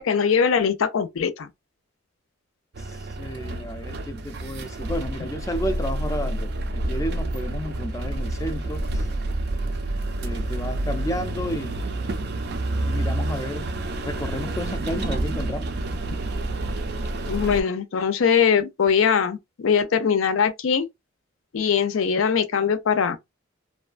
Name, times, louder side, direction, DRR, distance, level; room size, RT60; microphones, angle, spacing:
voice 1, 0.0-1.5 17.3-20.9 21.5-23.2, left 6 dB, 85° left, 0.5 m, -21 dB
sound 1, 2.7-17.6, right 1 dB, 55° right, 0.4 m, -28 dB
voice 2, 2.8-9.1 10.2-11.8 12.8-15.7, equal, 15° left, 0.4 m, -32 dB
2.7 x 2.2 x 2.4 m
head